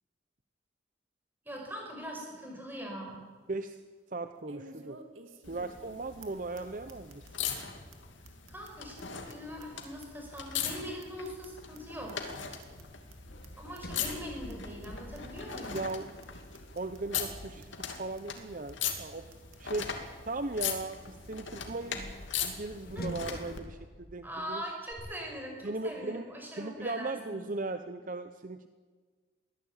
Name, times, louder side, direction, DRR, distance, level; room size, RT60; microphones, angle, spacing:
voice 1, 1.5-3.2 8.5-12.1 13.6-15.8 22.9-23.1 24.2-27.4, equal, 10° right, 0 dB, 5.5 m, -42 dB
sound 1, 2.1-2.2 2.7-2.8 4.5-5.9 6.2-6.3 6.5-6.6 6.9-7.3 7.6-7.7 7.9-8.0 8.2-10.4 10.7-11.8 12.1-12.2 12.4-12.8 13.1-13.2 13.4-13.5 13.7-14.2 14.5-14.6 14.8-14.9 15.1-15.6 15.9-16.0 16.2-16.3 16.5-17.0 17.3-17.4 17.6-17.7 17.9-18.4 18.7-18.8 19.0-19.1 19.3-19.7, right 3 dB, 90° right, 2.5 m, -53 dB
voice 2, 3.5-3.8 4.1-5.0 5.5-7.2 15.7-16.1 16.7-17.7 18.0-19.3 19.6-19.9 20.3-22.1 22.4-24.6 25.6-26.3 26.6-28.7, right 2 dB, 40° right, 9 dB, 0.7 m, -37 dB
sound 2, 5.4-23.6 24.9-25.0, left 7 dB, 70° left, 2.6 m, -40 dB
Sliding door, 13.3-18.1 19.7-24.6, equal, 50° left, 1.4 m, -47 dB
23.0 x 16.0 x 8.9 m, 1.5 s
head